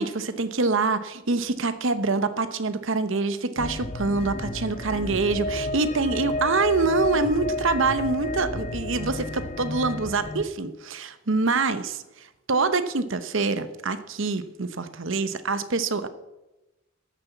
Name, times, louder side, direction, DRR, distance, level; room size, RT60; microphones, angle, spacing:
voice 1, 0.0-16.1, right 3 dB, 60° right, 12 dB, 0.8 m, -25 dB
sound 1, 3.6-10.4, left 2 dB, 35° left, 0.7 m, -31 dB
13.0 x 7.0 x 7.1 m, 1.0 s
head